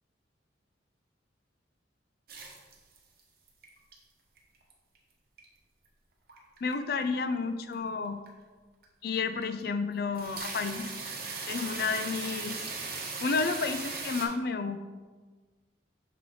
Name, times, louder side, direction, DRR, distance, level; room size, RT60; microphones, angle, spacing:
sound 1, 2.3-3.2 3.5-3.9 4.4-5.0 5.4-5.5 6.3-6.7 7.0-7.2 7.7-7.8 8.3-8.4 8.8-8.9 9.4-9.7 10.0-14.2, right 4 dB, 50° right, 1.0 m, -38 dB
voice 1, 6.6-8.2 9.0-10.9 11.5-12.6 13.2-14.8, left 4 dB, 55° left, 9 dB, 0.4 m, -31 dB
6.7 x 4.6 x 3.8 m, 1.4 s
head